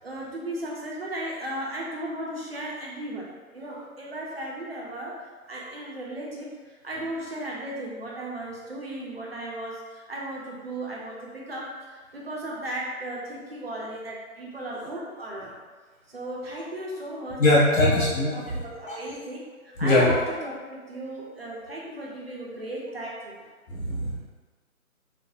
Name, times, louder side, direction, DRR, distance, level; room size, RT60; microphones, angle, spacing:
voice 1, 0.0-3.3 3.5-5.2 5.5-15.5 16.1-23.5, right 1 dB, 45° right, -3 dB, 0.5 m, -35 dB
voice 2, 17.4-18.3 18.9-19.0 19.8-20.0 23.7-24.2, left 2 dB, 60° left, -7 dB, 0.8 m, -21 dB
3.2 x 2.0 x 2.6 m, 1.4 s
figure-of-eight pair, 160°, 44 cm